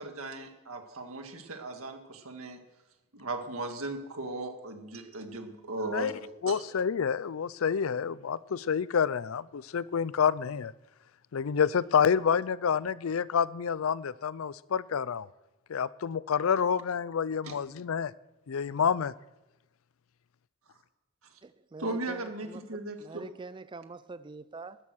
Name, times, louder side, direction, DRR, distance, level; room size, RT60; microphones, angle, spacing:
voice 1, 0.0-2.6 3.1-6.6 17.4-17.5 21.2-21.4 21.8-23.0, right 2 dB, 90° right, 5 dB, 1.8 m, -37 dB
voice 2, 6.4-10.7 11.3-15.3 15.7-18.1 18.5-19.1, left 7 dB, 75° left, 20 dB, 0.4 m, -28 dB
voice 3, 21.4-22.6 23.0-24.8, right 3 dB, 20° right, 14 dB, 0.4 m, -44 dB
13.0 x 11.0 x 6.3 m, 0.99 s
head